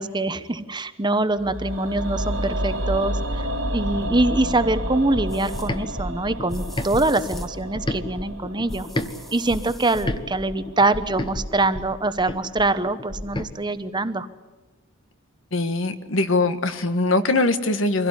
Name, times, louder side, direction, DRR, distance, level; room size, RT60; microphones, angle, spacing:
voice 1, 0.0-8.9 9.3-14.3, right 2 dB, 20° right, 11 dB, 0.9 m, -24 dB
sound 1, 1.4-11.5 11.8-11.9, equal, 80° right, 3.4 m, -31 dB
sound 2, 5.1-9.1 9.5-13.5, left 1 dB, 25° left, 1.1 m, -31 dB
sound 3, 5.3-5.7 6.5-7.6 8.7-10.1, right 1 dB, ahead, 1.3 m, -44 dB
voice 2, 15.5-18.1, left 2 dB, 70° left, 10 dB, 1.5 m, -22 dB
24.5 x 16.5 x 9.8 m, 1.2 s
head